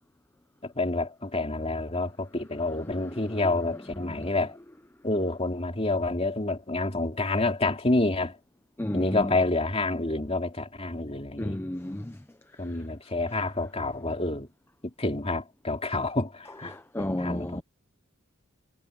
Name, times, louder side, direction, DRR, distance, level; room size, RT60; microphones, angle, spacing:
voice 1, 0.6-4.6 5.0-8.4 8.9-11.6 12.6-14.5 14.8-17.6, left 2 dB, 30° left, 3.3 m, -28 dB
voice 2, 8.8-9.2 11.4-12.2 16.7-17.6, left 1 dB, 10° left, 0.7 m, -32 dB
head